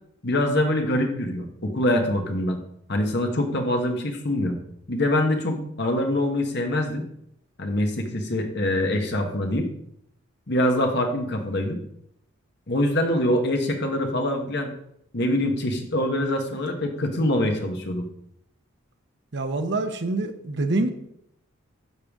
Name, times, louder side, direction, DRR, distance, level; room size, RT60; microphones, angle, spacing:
voice 1, 0.2-2.6 2.9-4.5 4.9-7.1 7.6-9.7 10.5-11.8 12.7-14.7 15.1-18.1, left 1 dB, 55° left, 4 dB, 1.3 m, -24 dB
voice 2, 19.3-20.9, right 2 dB, 55° right, 7 dB, 0.9 m, -25 dB
10.5 x 6.6 x 3.7 m, 0.74 s
head